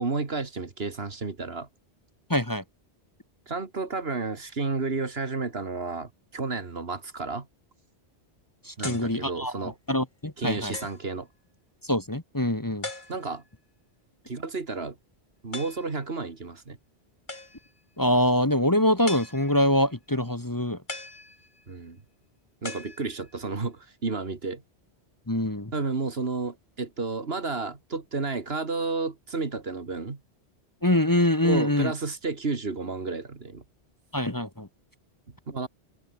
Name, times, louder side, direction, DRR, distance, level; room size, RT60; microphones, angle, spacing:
voice 1, 0.0-1.7 3.5-7.5 8.8-9.7 10.4-11.3 13.1-13.4 14.3-15.0 15.4-16.8 21.7-22.0 22.6-24.6 25.7-30.2 31.4-33.6 35.5-35.7, right 4 dB, 65° right, 2.3 m, -31 dB
voice 2, 2.3-2.6 8.6-10.7 11.8-12.9 18.0-20.8 25.3-25.7 30.8-31.9 34.1-34.7, left 1 dB, 20° left, 1.5 m, -24 dB
sound 1, 8.8-9.2 9.9-10.0 10.7-11.1 12.8-13.5 15.5-15.9 17.3-17.8 19.1-19.8 20.9-21.8 22.6-23.5, left 2 dB, 45° left, 3.1 m, -40 dB
omnidirectional pair, 1.1 m